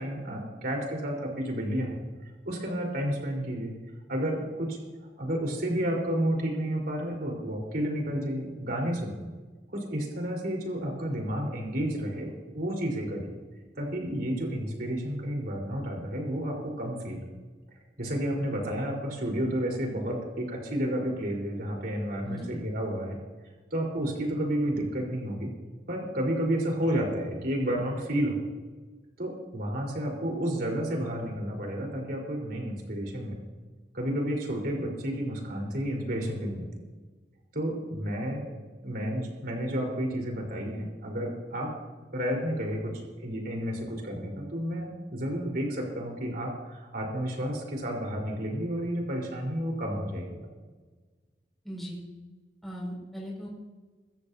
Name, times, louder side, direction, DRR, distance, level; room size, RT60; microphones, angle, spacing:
voice 1, 0.0-2.0 2.5-3.7 4.1-4.8 5.2-9.2 9.7-13.3 13.8-17.2 18.0-23.2 23.7-25.5 25.9-28.4 29.2-33.4 33.9-36.7 37.5-38.5 38.8-41.7 42.1-50.5, equal, 60° right, 0 dB, 4.2 m, -31 dB
voice 2, 22.2-22.6 51.6-52.0 52.6-53.5, equal, ahead, -4 dB, 5.7 m, -38 dB
23.5 x 15.0 x 2.8 m, 1.3 s
head